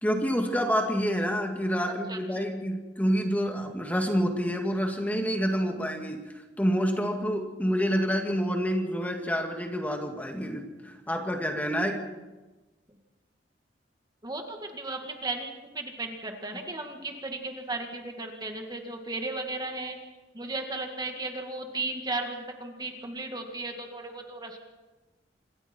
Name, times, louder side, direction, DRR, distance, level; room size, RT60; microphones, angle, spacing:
voice 1, 0.0-6.2 6.6-12.0, equal, 10° left, 2 dB, 2.2 m, -28 dB
voice 2, 2.1-2.4 14.2-20.0 20.3-24.6, right 2 dB, 25° right, 3 dB, 2.0 m, -35 dB
27.0 x 22.0 x 4.6 m, 1.1 s
head